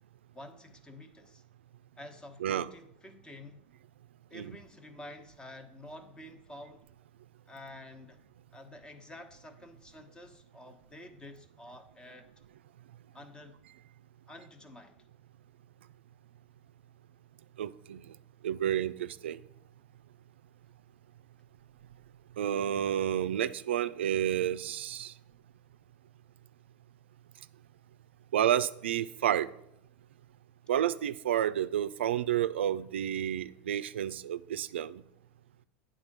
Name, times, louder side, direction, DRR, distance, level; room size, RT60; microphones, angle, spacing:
voice 1, 0.3-1.4 2.0-3.6 4.3-6.9 7.5-8.2 8.5-12.3 13.1-13.6 14.3-15.1, left 1 dB, 15° left, 1.1 m, -49 dB
voice 2, 17.6-18.0 18.4-19.4 22.4-25.1 28.3-29.5 30.7-35.0, right 10 dB, 90° right, 0.4 m, -30 dB
9.1 x 3.8 x 6.6 m
hypercardioid pair, 105°, 6 cm